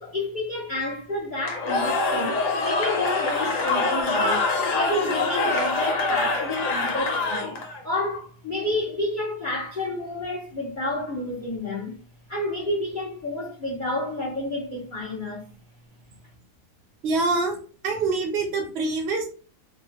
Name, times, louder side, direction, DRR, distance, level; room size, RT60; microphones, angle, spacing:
voice 1, 0.0-4.5 4.7-12.0 12.3-15.5, left 1 dB, 90° left, 0.4 m, -30 dB
Cheering / Crowd, 1.4-7.8, left 3 dB, 65° left, 1.1 m, -25 dB
voice 2, 17.0-17.6 17.8-19.3, right 3 dB, 90° right, 0.5 m, -25 dB
3.5 x 2.1 x 2.7 m
omnidirectional pair, 2.2 m